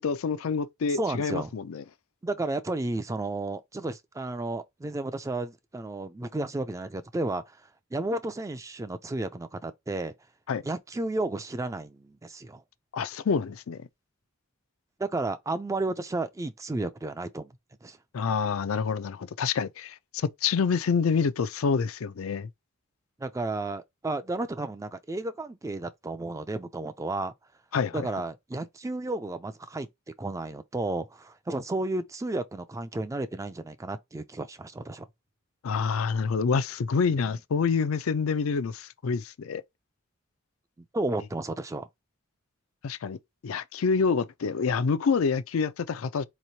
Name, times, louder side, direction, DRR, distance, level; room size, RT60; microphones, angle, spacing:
voice 1, 0.0-1.8 10.5-10.6 12.9-13.9 18.1-22.5 27.7-28.1 35.6-39.6 42.8-43.2 43.4-46.2, left 5 dB, 80° left, 0.4 m, -27 dB
voice 2, 0.9-1.5 2.2-7.6 7.9-10.1 10.6-12.6 15.0-17.5 17.8-18.0 23.2-27.3 27.9-29.9 30.2-35.0 40.9-41.9, right 2 dB, 15° right, 0.3 m, -32 dB
4.3 x 3.0 x 2.7 m
head